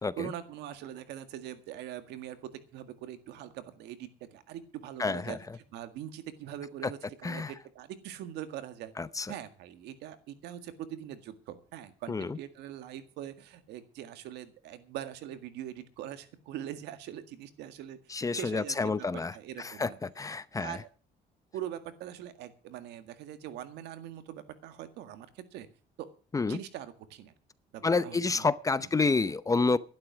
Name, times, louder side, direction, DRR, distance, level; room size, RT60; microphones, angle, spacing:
voice 1, 0.2-5.4 5.7-8.9 9.3-20.0 20.6-20.9 21.5-25.7 26.0-26.1 26.4-27.3 27.7-28.5 28.8-28.9, right 11 dB, 85° right, 1.9 m, -42 dB
voice 2, 5.0-5.4 6.8-6.9 7.2-7.5 9.0-9.3 12.1-12.4 18.1-20.8 26.3-26.6 27.8-29.8, left 4 dB, 20° left, 0.7 m, -29 dB
12.5 x 11.5 x 6.1 m
cardioid pair, 110°, 17 cm